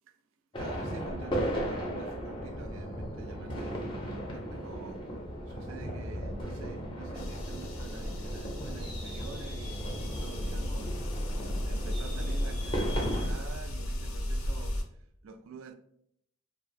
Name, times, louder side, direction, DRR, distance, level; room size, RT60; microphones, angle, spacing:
sound 1, 0.5-13.3, equal, 25° left, 0.4 m, -36 dB
voice 1, 0.6-5.1 5.4-15.7, right 4 dB, 75° right, 0.3 m, -47 dB
sound 2, 7.1-14.8, equal, 85° left, 0.4 m, -34 dB
2.4 x 2.0 x 2.5 m
head